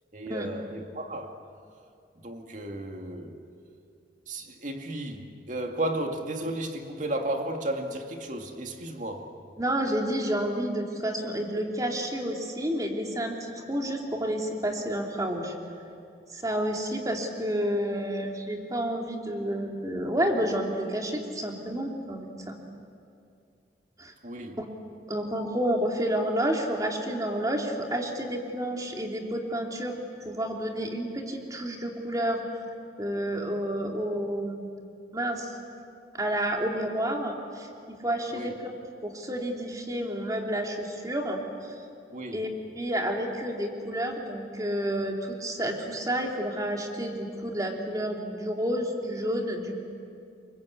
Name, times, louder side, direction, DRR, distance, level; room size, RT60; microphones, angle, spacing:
voice 1, 0.1-1.4 2.2-3.4 4.3-9.3 24.2-24.6 38.3-38.5 42.1-42.5, right 1 dB, 45° right, 2.3 m, -34 dB
voice 2, 9.6-15.5 16.3-22.6 24.0-24.1 24.6-24.7 25.1-29.9 30.2-32.4 33.0-34.7 35.1-35.5 36.1-38.7 39.0-41.4 42.3-42.5 42.8-49.8, right 1 dB, 20° right, 3.0 m, -30 dB
28.0 x 24.5 x 8.4 m
head